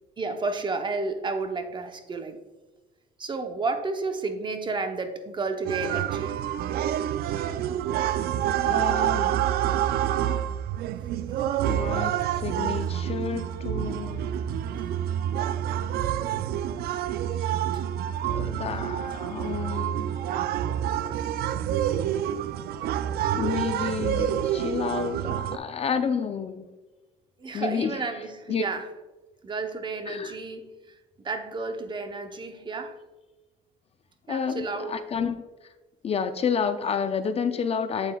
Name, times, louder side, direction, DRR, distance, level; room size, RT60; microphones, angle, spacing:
voice 1, 0.2-2.4 3.2-6.4 14.8-14.9 16.9-17.0 17.7-17.8 21.0-21.1 27.4-28.9 29.4-31.0 31.2-33.0 34.3-35.0, right 3 dB, 30° right, 6 dB, 0.8 m, -32 dB
sound 1, 5.7-25.6, right 11 dB, 65° right, 0.4 m, -27 dB
voice 2, 8.6-9.4 11.6-14.3 18.2-20.1 23.3-26.7 27.5-28.0 28.5-28.7 30.1-30.4 34.3-35.4 36.0-38.1, left 6 dB, 35° left, 10 dB, 0.4 m, -30 dB
8.1 x 7.6 x 2.3 m, 1.2 s
cardioid pair, 110°, 17 cm